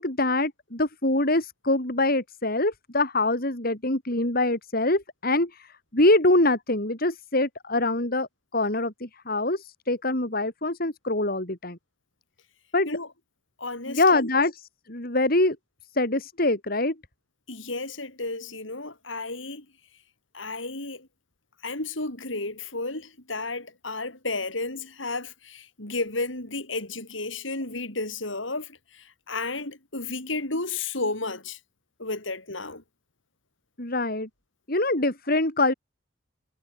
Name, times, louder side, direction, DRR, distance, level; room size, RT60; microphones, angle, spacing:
voice 1, 0.0-5.7 5.9-8.3 8.5-11.8 12.7-12.9 13.9-14.6 14.9-15.6 15.9-16.9 33.8-34.3 34.7-35.7, left 2 dB, 50° left, 4.7 m, -24 dB
voice 2, 13.6-14.3 17.5-19.6 20.3-21.1 21.6-31.6 32.0-32.8, left 3 dB, 80° left, 7.0 m, -32 dB
head